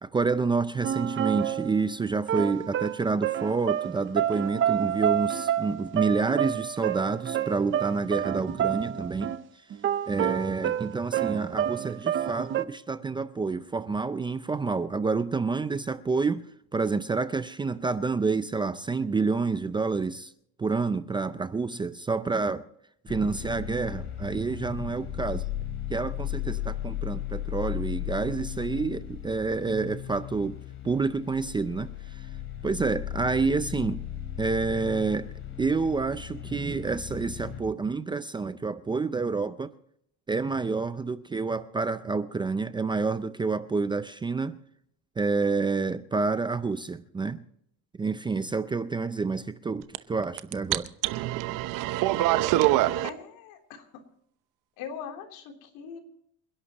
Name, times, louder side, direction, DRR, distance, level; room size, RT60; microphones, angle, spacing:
voice 1, 0.0-9.4 10.1-20.3 20.6-22.6 23.0-25.5 25.9-30.6 30.8-32.3 32.6-34.0 34.4-35.3 35.6-39.7 40.3-44.6 45.2-47.4 48.0-50.9, right 4 dB, 15° right, 0.4 m, -28 dB
sound 1, 0.8-1.9 2.3-9.4 9.7-12.6, right 10 dB, 35° right, 0.8 m, -29 dB
sound 2, 23.1-37.6, left 12 dB, 35° left, 3.8 m, -36 dB
sound 3, 49.9-50.0 50.2-53.1, right 15 dB, 65° right, 0.9 m, -24 dB
voice 2, 53.0-54.0 54.8-56.0, left 7 dB, 80° left, 3.4 m, -41 dB
28.0 x 11.0 x 3.0 m
cardioid pair, 150°, 35 cm